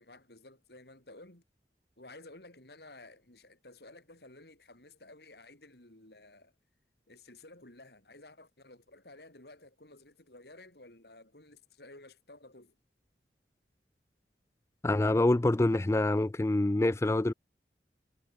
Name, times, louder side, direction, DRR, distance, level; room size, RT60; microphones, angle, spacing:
voice 1, 0.0-1.4 2.0-6.5 7.1-12.8, left 2 dB, 65° left, 4.0 m, -54 dB
voice 2, 14.8-17.3, left 2 dB, 15° left, 0.3 m, -26 dB
head